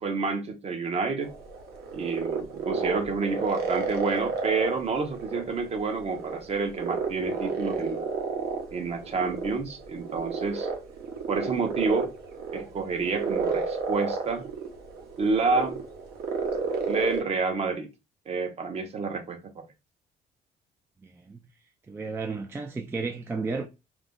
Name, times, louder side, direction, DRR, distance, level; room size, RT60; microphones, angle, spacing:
voice 1, 0.0-1.3 1.9-8.1 8.7-10.7 11.3-12.1 12.5-14.4 15.2-15.8 16.9-17.9 18.3-19.7, right 4 dB, 40° right, 0.7 m, -29 dB
sound 1, 1.2-17.2, right 4 dB, 70° right, 0.8 m, -32 dB
voice 2, 21.0-21.4 21.9-23.7, right 4 dB, 15° right, 0.3 m, -33 dB
2.4 x 2.0 x 3.6 m
cardioid pair, 110°, 17 cm